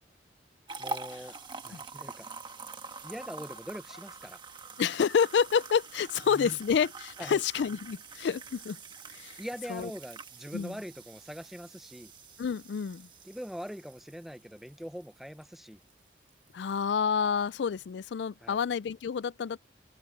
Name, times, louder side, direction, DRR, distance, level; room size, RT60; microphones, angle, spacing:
Dog, 0.7-1.0 1.6-1.8 2.6-2.7 3.0-4.2 4.5-4.7 5.0-6.5 6.8-6.9 7.2-7.3 7.6-7.7 8.1-8.2 8.6-8.7 8.9-9.0, left 3 dB, 40° left, 6.3 m, -62 dB
sound 1, 0.7-15.9 16.3-16.5 17.0-17.1, right 3 dB, 25° right, 1.4 m, -45 dB
voice 1, 0.8-1.4 1.6-2.3 3.0-4.4 6.3-6.6 7.2-7.4 9.4-12.1 13.2-15.8 18.4-18.6, equal, ahead, 0.8 m, -42 dB
voice 2, 4.8-8.8 9.1-9.4 9.7-9.9 10.5-10.7 12.4-13.1 16.5-19.6, left 7 dB, 80° left, 0.4 m, -28 dB
head